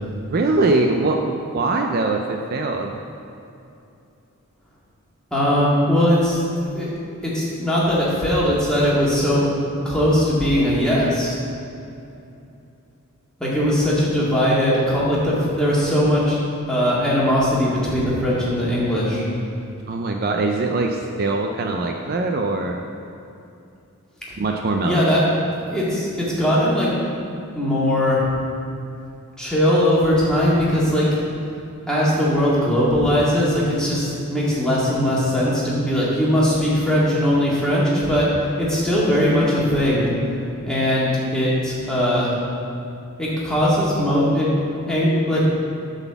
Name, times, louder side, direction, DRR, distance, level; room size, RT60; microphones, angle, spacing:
voice 1, 0.3-3.0 19.9-22.8 24.4-25.0, right 3 dB, 45° right, 3 dB, 0.4 m, -22 dB
voice 2, 5.3-6.4 6.7-6.9 7.2-9.4 9.8-11.4 13.4-16.4 16.7-19.2 24.8-25.2 25.7-26.9 27.6-28.3 29.4-31.1 31.9-38.3 38.6-40.1 40.7-42.4 43.2-45.4, equal, 5° left, -8 dB, 1.9 m, -20 dB
9.0 x 4.1 x 7.0 m, 2.7 s
head